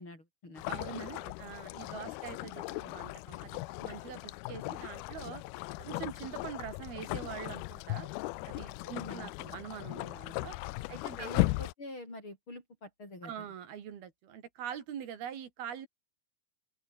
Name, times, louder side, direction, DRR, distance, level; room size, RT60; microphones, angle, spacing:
voice 1, 0.0-0.7 0.9-1.0 8.9-9.3 10.9-13.5, left 2 dB, 30° left, 8.6 m, -46 dB
sound 1, 0.6-11.7, left 21 dB, 90° left, 2.6 m, -37 dB
voice 2, 0.7-5.4 5.8-8.1 8.5-10.6 10.9-11.3 13.2-15.9, right 9 dB, 85° right, 4.5 m, -44 dB
open air
omnidirectional pair, 4.3 m